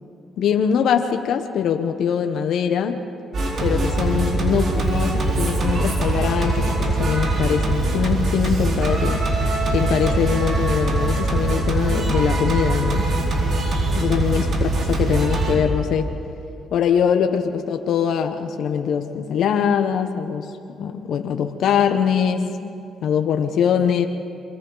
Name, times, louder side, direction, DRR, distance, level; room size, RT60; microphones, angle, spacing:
voice 1, 0.4-3.0 3.6-9.2 9.7-13.1 13.9-16.1 16.7-20.5 20.8-22.7 23.0-24.1, left 8 dB, 75° left, 6 dB, 1.0 m, -22 dB
Singing, 3.3-15.5, right 2 dB, 55° right, 4.0 m, -22 dB
28.5 x 22.5 x 4.0 m, 2.6 s
cardioid pair, 90°, 0 cm